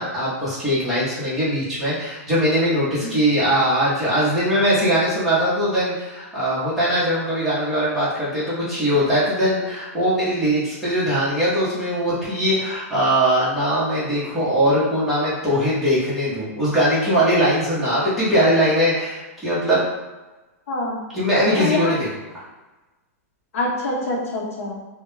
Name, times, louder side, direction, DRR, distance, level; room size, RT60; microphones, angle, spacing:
voice 1, 0.0-19.8 21.1-22.1, equal, ahead, -11 dB, 0.8 m, -21 dB
voice 2, 20.7-21.0 21.5-21.9 23.5-24.8, left 2 dB, 65° left, -3 dB, 0.8 m, -25 dB
2.2 x 2.1 x 3.1 m, 1.1 s
supercardioid pair, 170°, 8 cm